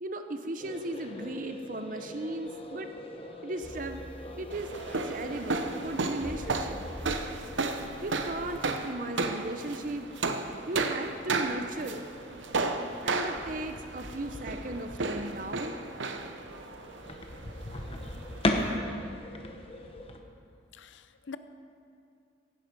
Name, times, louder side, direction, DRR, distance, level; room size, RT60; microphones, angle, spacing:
voice 1, 0.0-2.9 3.4-4.0 4.4-4.7 5.0-6.8 8.0-10.1 10.7-12.0 13.0-15.8, right 1 dB, 45° right, 6 dB, 0.7 m, -36 dB
sound 1, 0.6-20.2, left 1 dB, 30° left, 1.0 m, -40 dB
sound 2, 3.6-8.7, equal, 5° left, 0.5 m, -45 dB
sound 3, 4.5-18.8, right 3 dB, 75° right, 0.9 m, -34 dB
voice 2, 20.7-21.4, left 5 dB, 75° left, 11 dB, 0.7 m, -44 dB
16.0 x 11.5 x 5.4 m, 2.4 s
head